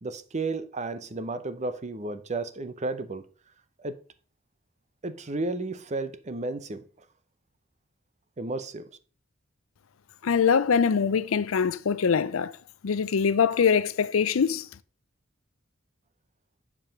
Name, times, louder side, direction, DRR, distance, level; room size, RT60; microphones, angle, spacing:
voice 1, 0.0-3.3 3.8-4.0 5.0-6.8 8.4-8.9, right 3 dB, 35° right, 0.7 m, -33 dB
voice 2, 10.2-12.5 12.8-14.7, left 6 dB, 80° left, 0.5 m, -23 dB
7.7 x 4.8 x 5.1 m
head